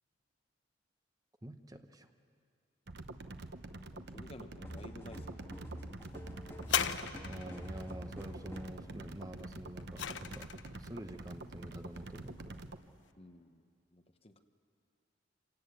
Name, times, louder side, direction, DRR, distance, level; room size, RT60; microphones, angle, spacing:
voice 1, 1.4-2.1 7.3-12.6, right 1 dB, 20° right, 7 dB, 0.9 m, -47 dB
sound 1, 2.9-12.8, right 2 dB, 65° right, 1.0 m, -47 dB
voice 2, 3.7-5.6 13.1-13.6 13.9-14.4, left 1 dB, 35° left, 7 dB, 1.1 m, -53 dB
sound 2, 4.6-8.8, right 1 dB, 15° left, 2.3 m, -47 dB
sound 3, 6.6-7.7 9.4-10.8 11.6-11.7, left 8 dB, 90° left, 0.8 m, -36 dB
26.5 x 17.5 x 8.3 m, 2.2 s
head